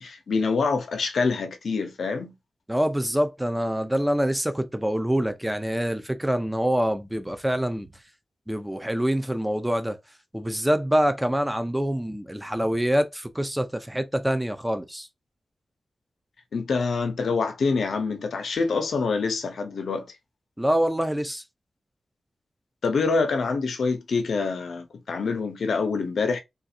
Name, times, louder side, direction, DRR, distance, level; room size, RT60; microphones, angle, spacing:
voice 1, 0.0-2.3 16.5-20.1 22.8-26.4, left 4 dB, 90° left, 0.7 m, -26 dB
voice 2, 2.7-7.9 8.5-10.0 10.3-15.1 20.6-21.4, equal, 10° right, 0.5 m, -25 dB
3.6 x 2.5 x 2.7 m
wide cardioid pair, 80°, 0 cm